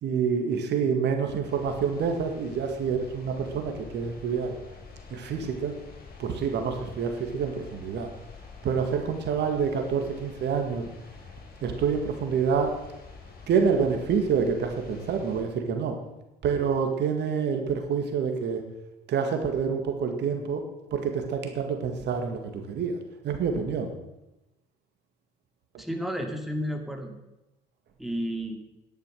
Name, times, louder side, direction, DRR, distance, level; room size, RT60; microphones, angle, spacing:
voice 1, 0.0-4.5 5.1-5.8 6.2-8.1 8.6-10.8 11.6-12.8 13.5-16.0 16.4-18.6 19.1-20.6 20.9-23.0 23.2-23.9 25.7-25.8, right 6 dB, 55° right, 5 dB, 2.0 m, -27 dB
sound 1, 1.4-15.4, left 5 dB, 45° left, 3.6 m, -47 dB
voice 2, 25.8-27.1 28.0-28.6, equal, ahead, 3 dB, 2.5 m, -31 dB
10.5 x 10.5 x 6.4 m, 0.94 s
hypercardioid pair, 60°, 21 cm